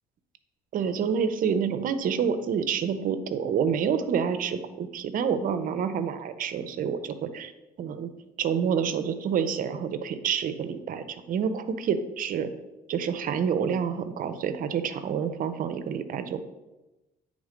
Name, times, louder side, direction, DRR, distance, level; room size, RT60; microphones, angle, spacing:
voice 1, 0.7-7.5 7.8-8.1 8.4-12.5 12.9-16.4, right 7 dB, 55° right, 10 dB, 0.7 m, -28 dB
8.6 x 3.7 x 5.1 m, 1.1 s
cardioid pair, 110°, 17 cm